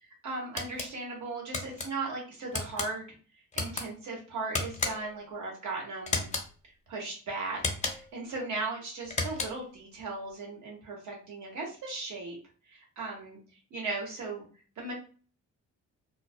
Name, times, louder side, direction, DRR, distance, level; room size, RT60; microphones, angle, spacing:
voice 1, 0.2-3.1 3.5-6.3 6.9-12.4 12.7-13.4 13.7-14.4 14.8-14.9, right 3 dB, 70° right, -1 dB, 1.2 m, -37 dB
sound 1, 0.6-0.9 1.5-1.9 2.5-2.9 3.5-3.9 4.5-5.2 6.1-6.5 7.6-8.1 9.0-9.7, left 3 dB, 25° left, 0.6 m, -33 dB
2.3 x 2.1 x 2.6 m, 0.39 s
cardioid pair, 90°, 30 cm